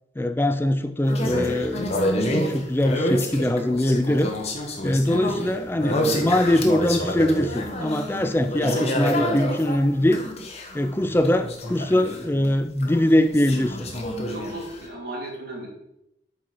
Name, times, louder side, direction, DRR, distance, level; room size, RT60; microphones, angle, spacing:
voice 1, 0.2-2.1 2.5-4.3 4.8-10.2 10.7-13.9, left 1 dB, 10° left, 9 dB, 0.4 m, -22 dB
sound 1, 1.0-12.6 12.8-14.8, equal, 35° left, 1.1 m, -28 dB
voice 2, 14.3-15.7, right 1 dB, 55° right, -4 dB, 2.8 m, -34 dB
8.0 x 4.8 x 4.5 m, 0.82 s
head